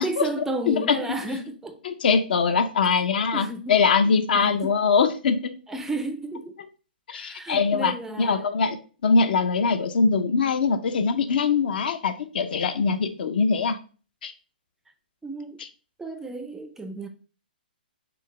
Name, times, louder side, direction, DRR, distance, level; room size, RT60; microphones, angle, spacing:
voice 1, 0.0-1.8 3.3-4.7 5.7-6.6 7.1-8.5 15.2-15.6 16.0-17.1, right 2 dB, 5° right, 0.3 m, -33 dB
voice 2, 0.7-1.0 1.8-5.5 7.1-8.8 9.0-13.8 14.2-14.3, left 5 dB, 65° left, 0.5 m, -22 dB
3.8 x 3.3 x 3.1 m
hypercardioid pair, 135°, 5 cm